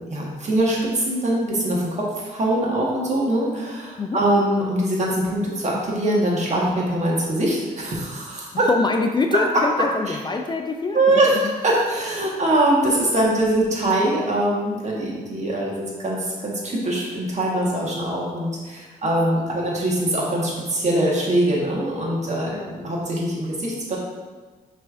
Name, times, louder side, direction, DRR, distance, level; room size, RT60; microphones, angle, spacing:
voice 1, 0.0-8.7 9.3-9.4 10.1-10.2 10.9-24.0, right 1 dB, 45° right, -4 dB, 1.4 m, -23 dB
voice 2, 8.5-11.4 19.0-19.6 22.5-22.8, left 3 dB, 25° left, 3 dB, 0.4 m, -25 dB
5.9 x 3.3 x 2.5 m, 1.3 s
cardioid pair, 70°, 17 cm